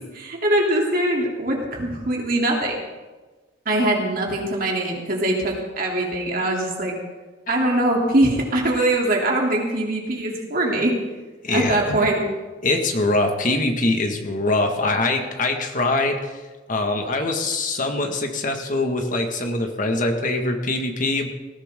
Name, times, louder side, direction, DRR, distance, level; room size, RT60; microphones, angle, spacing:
voice 1, 0.2-2.8 3.6-6.9 7.5-11.0 11.5-12.2, right 1 dB, 50° right, -1 dB, 3.2 m, -22 dB
voice 2, 11.4-11.8 12.6-16.4 16.7-21.3, left 2 dB, 45° left, 4 dB, 1.9 m, -23 dB
19.0 x 16.0 x 3.8 m, 1.3 s
head